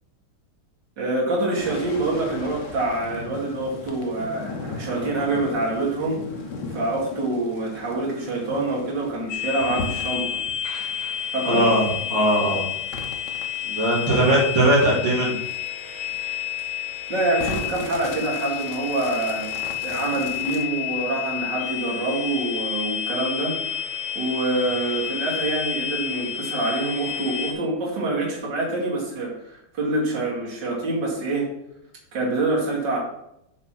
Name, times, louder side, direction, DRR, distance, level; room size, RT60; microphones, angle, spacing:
voice 1, 1.0-10.4 11.3-11.7 17.1-19.5 19.8-23.8 24.1-31.5 32.1-33.0, right 2 dB, 60° right, -4 dB, 3.0 m, -26 dB
sound 1, 1.6-21.4, left 2 dB, 60° left, 1.7 m, -39 dB
sound 2, 9.3-27.5, left 10 dB, 80° left, 2.3 m, -30 dB
voice 2, 11.4-11.8 12.1-12.6 13.6-15.3, right 1 dB, 80° right, -5 dB, 2.8 m, -19 dB
6.6 x 5.0 x 6.0 m, 0.79 s
omnidirectional pair, 2.2 m